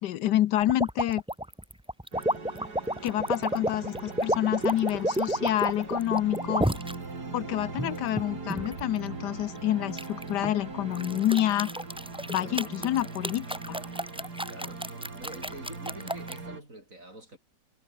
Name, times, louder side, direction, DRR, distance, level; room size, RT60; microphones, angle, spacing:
voice 1, 0.0-1.2 3.0-6.7 7.3-11.7 12.3-13.8, left 13 dB, 80° left, 1.3 m, -28 dB
sound 1, 0.7-6.9 7.5-8.8 10.0-10.5 10.9-16.4, right 1 dB, 5° right, 1.0 m, -30 dB
sound 2, 2.1-16.6, right 3 dB, 65° right, 4.4 m, -40 dB
voice 2, 12.3-12.9 14.4-14.9 15.2-17.4, right 1 dB, 50° right, 8.5 m, -46 dB
omnidirectional pair, 1.8 m